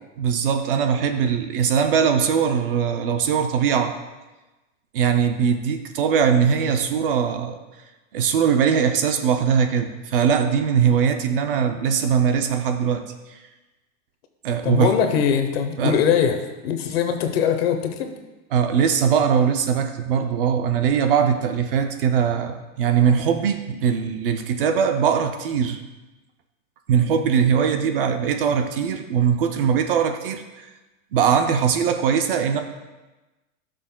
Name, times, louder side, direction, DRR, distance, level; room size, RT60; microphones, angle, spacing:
voice 1, 0.2-3.9 4.9-7.6 8.1-13.0 13.3-13.4 14.4-15.0 15.8-16.0 18.5-25.8 26.9-30.7 31.1-32.6, right 7 dB, 45° right, 7 dB, 0.5 m, -21 dB
voice 2, 14.6-16.4 16.6-18.1, left 8 dB, 45° left, 6 dB, 0.9 m, -21 dB
14.5 x 6.4 x 2.2 m, 1.1 s
supercardioid pair, 175°, 41 cm